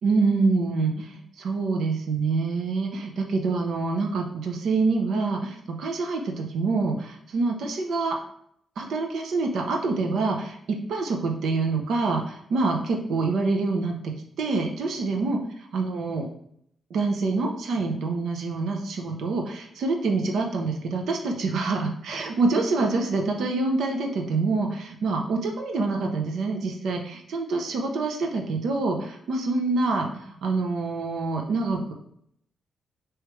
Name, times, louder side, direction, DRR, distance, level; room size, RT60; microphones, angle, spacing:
voice 1, 0.0-8.2 8.8-15.4 15.7-16.3 16.9-31.9, right 3 dB, 75° right, 2 dB, 0.7 m, -26 dB
4.7 x 3.1 x 3.1 m, 0.68 s
cardioid pair, 135°, 0 cm